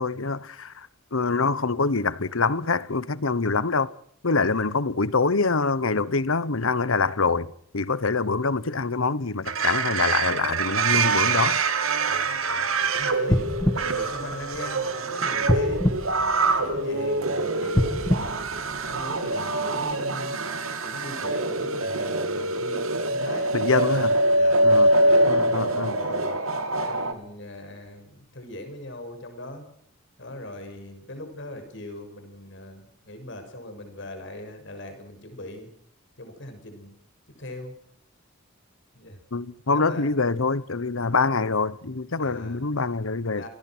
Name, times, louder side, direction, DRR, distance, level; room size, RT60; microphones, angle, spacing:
voice 1, 0.0-3.9 4.2-7.5 7.7-11.6 23.5-24.2 24.6-24.9 25.3-25.9 39.3-43.5, left 4 dB, 80° left, 1.1 m, -25 dB
voice 2, 4.3-4.7 12.1-13.5 13.7-15.8 16.4-18.3 18.8-20.4 20.8-23.6 23.8-24.6 25.0-26.4 26.8-29.7 30.2-35.7 36.2-36.9 37.3-37.7 38.9-39.2 39.7-40.1 42.2-42.6 43.3-43.5, left 1 dB, 60° left, 6.4 m, -40 dB
sound 1, 9.5-27.1, right 2 dB, 85° right, 2.8 m, -24 dB
sound 2, 13.2-14.9 15.4-17.0 17.6-19.3 19.9-20.0, left 1 dB, 20° left, 1.6 m, -26 dB
28.5 x 18.5 x 6.2 m
head